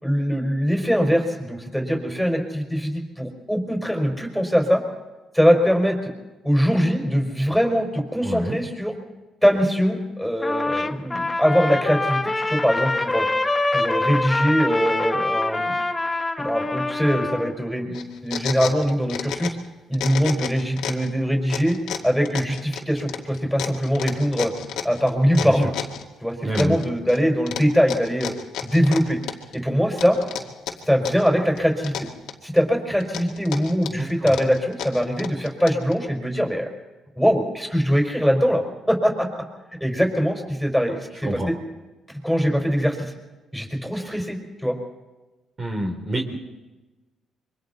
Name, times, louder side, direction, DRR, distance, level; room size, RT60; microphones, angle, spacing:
voice 1, 0.0-4.8 5.3-6.1 6.4-8.9 9.4-13.3 13.7-15.7 16.4-19.5 19.9-21.8 22.0-24.5 24.8-25.7 26.2-28.3 28.6-29.2 29.5-30.2 30.9-31.9 32.4-36.7 37.2-39.3 39.8-41.6 42.2-43.0 43.5-44.8, equal, ahead, 2 dB, 5.2 m, -22 dB
voice 2, 8.2-8.6 25.4-25.5 26.4-26.8 33.9-34.3 41.3-41.5 44.0-44.2 45.6-46.4, right 1 dB, 35° right, 1 dB, 3.6 m, -28 dB
Trumpet, 10.4-17.5, left 2 dB, 20° left, 1.5 m, -25 dB
sound 1, 17.9-19.7 19.9-21.1 21.5-26.0 26.6-27.2 27.5-29.6 30.0-31.3 31.6-32.6 33.0-35.9, left 9 dB, 90° left, 2.2 m, -31 dB
27.0 x 24.0 x 4.2 m, 1.1 s
cardioid pair, 90°, 0 cm